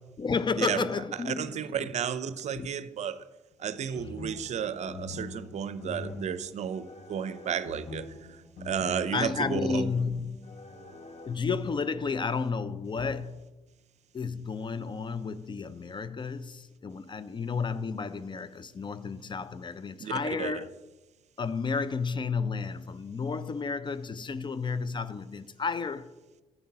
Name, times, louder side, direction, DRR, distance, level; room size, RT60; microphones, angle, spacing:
voice 1, 0.2-1.9 2.5-2.7 3.8-4.0 9.1-10.6 11.2-13.5 14.1-20.7 21.4-26.1, left 5 dB, 30° left, 0.5 m, -32 dB
voice 2, 1.3-3.2 3.6-8.1 8.6-9.9 20.0-20.5, right 8 dB, 50° right, 0.6 m, -32 dB
sound 1, 3.9-11.3, left 3 dB, 50° left, 1.1 m, -43 dB
10.0 x 8.8 x 2.9 m
hypercardioid pair, 45°, 15 cm